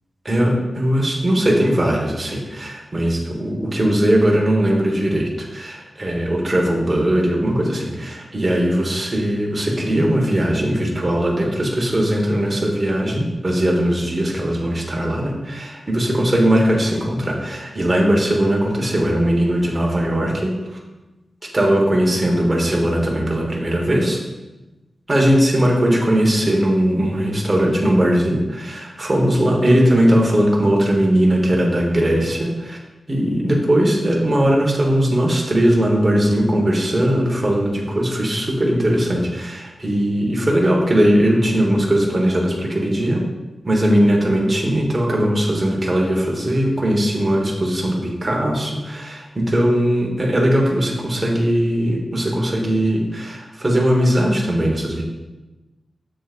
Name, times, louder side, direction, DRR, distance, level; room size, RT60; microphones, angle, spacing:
voice 1, 0.2-20.8 21.5-24.2 25.1-32.8 33.1-43.2 43.6-55.0, equal, 25° right, -2 dB, 1.3 m, -19 dB
7.1 x 7.0 x 2.5 m, 1.1 s
wide cardioid pair, 140°, 0 cm